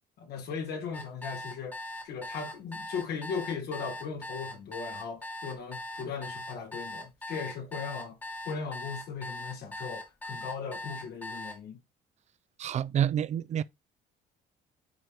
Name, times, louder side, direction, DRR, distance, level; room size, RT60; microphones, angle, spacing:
voice 1, 0.2-8.2 8.4-11.8, left 5 dB, 75° left, 1.4 m, -38 dB
sound 1, 0.9-11.6, left 1 dB, 10° left, 0.8 m, -40 dB
voice 2, 12.6-13.6, right 10 dB, 40° right, 0.4 m, -28 dB
9.3 x 3.4 x 3.0 m
cardioid pair, 110°, 17 cm